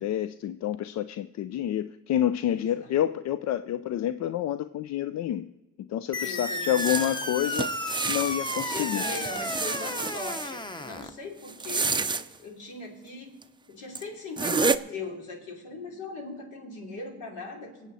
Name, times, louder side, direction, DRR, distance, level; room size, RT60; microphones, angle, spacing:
voice 1, 0.0-5.5 5.8-7.7 8.1-9.0, left 11 dB, 60° left, 13 dB, 0.5 m, -28 dB
voice 2, 2.5-2.9 6.2-7.1 8.7-13.4 13.7-17.9, left 3 dB, 80° left, 0 dB, 3.3 m, -40 dB
sound 1, 6.1-11.1, left 2 dB, 15° left, 0.9 m, -33 dB
sound 2, 6.8-10.5 11.5-12.2 13.4-13.5 13.9-14.0 14.4-14.8, right 4 dB, 15° right, 0.5 m, -29 dB
24.0 x 8.2 x 4.1 m, 1.1 s
cardioid pair, 90°, 30 cm